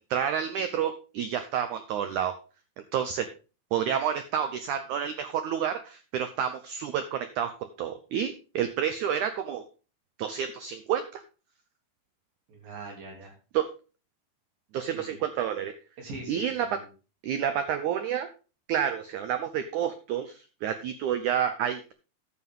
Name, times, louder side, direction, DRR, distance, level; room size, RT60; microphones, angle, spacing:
voice 1, 0.0-2.4 2.9-3.3 3.7-9.6 10.2-11.2 13.5-13.7 14.7-15.7 16.3-16.8 17.2-18.3 18.7-21.9, right 9 dB, 85° right, 9 dB, 1.7 m, -29 dB
voice 2, 12.5-13.3 14.8-15.2 16.0-16.9, right 2 dB, 65° right, 0 dB, 4.7 m, -43 dB
11.5 x 8.3 x 3.7 m, 0.34 s
omnidirectional pair, 4.5 m